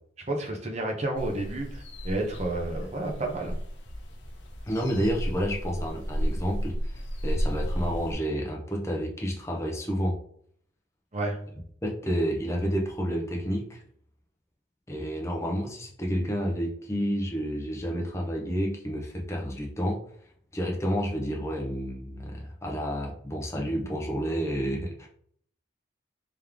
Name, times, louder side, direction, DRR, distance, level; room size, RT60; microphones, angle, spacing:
voice 1, 0.3-3.5 11.1-11.4, right 2 dB, 35° right, 1 dB, 0.8 m, -31 dB
sound 1, 1.2-8.1, equal, 75° left, 0.8 m, -33 dB
voice 2, 4.6-10.2 11.8-13.8 14.9-20.0 20.5-25.1, equal, 15° left, -1 dB, 0.8 m, -30 dB
3.5 x 3.1 x 3.6 m, 0.63 s
head